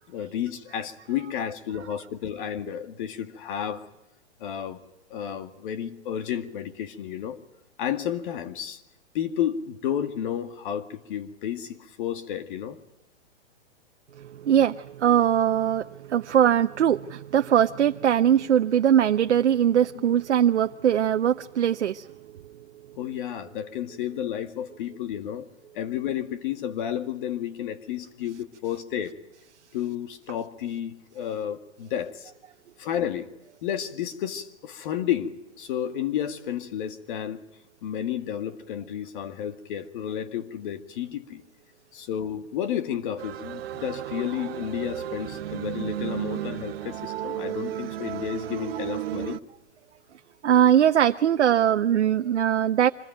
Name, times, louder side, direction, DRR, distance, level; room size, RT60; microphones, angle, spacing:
voice 1, 0.1-3.9 4.4-4.8 5.1-7.4 7.8-8.8 9.1-12.8 20.0-20.1 23.0-25.5 25.7-29.1 29.7-32.3 32.8-33.3 33.6-37.4 37.8-41.4 41.9-49.4, left 10 dB, 45° left, 9 dB, 2.2 m, -31 dB
voice 2, 14.2-22.1 50.4-52.9, right 10 dB, 80° right, 7 dB, 0.9 m, -21 dB
sound 1, 43.2-49.4, right 12 dB, 60° right, 1.2 m, -33 dB
25.5 x 20.5 x 9.2 m, 0.89 s
hypercardioid pair, 140°, 34 cm